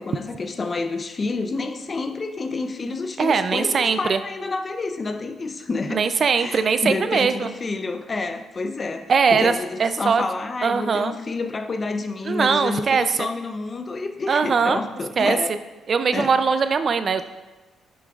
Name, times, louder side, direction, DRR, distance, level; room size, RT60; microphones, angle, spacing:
voice 1, 0.0-6.0 6.4-15.6 16.1-16.4, left 3 dB, 35° left, 7 dB, 0.6 m, -29 dB
voice 2, 3.2-4.2 5.9-7.5 9.1-9.5 9.8-10.2 10.6-11.1 12.3-13.3 14.3-14.8 15.2-15.4 15.9-17.2, right 5 dB, 45° right, 11 dB, 0.4 m, -21 dB
10.5 x 7.0 x 2.4 m, 1.2 s
cardioid pair, 90°, 0 cm